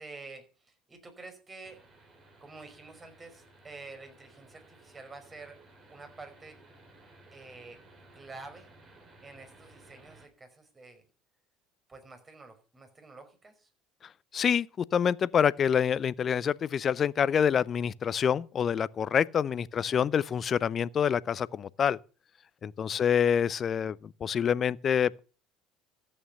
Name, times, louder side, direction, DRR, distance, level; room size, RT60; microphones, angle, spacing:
voice 1, 0.0-1.8 2.4-5.6 5.9-6.6 7.3-7.8 8.1-8.7 9.2-11.0 11.9-13.7 19.7-20.0 22.8-23.2, right 3 dB, 25° right, 5.2 m, -49 dB
sound 1, 1.6-10.2, right 2 dB, 40° right, 5.6 m, -57 dB
voice 2, 14.3-22.0 22.6-25.2, left 8 dB, 40° left, 0.6 m, -27 dB
14.0 x 8.9 x 6.8 m
hypercardioid pair, 65°, 0 cm